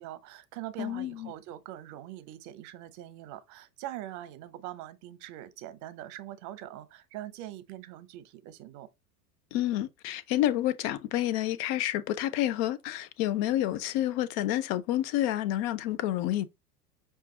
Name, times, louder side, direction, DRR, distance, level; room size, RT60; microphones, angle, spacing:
voice 1, 0.0-8.9, right 13 dB, 40° right, 0.8 m, -43 dB
voice 2, 0.8-1.3 9.5-16.5, left 13 dB, 40° left, 0.6 m, -29 dB
5.7 x 2.5 x 3.8 m
figure-of-eight pair, 90°, 47 cm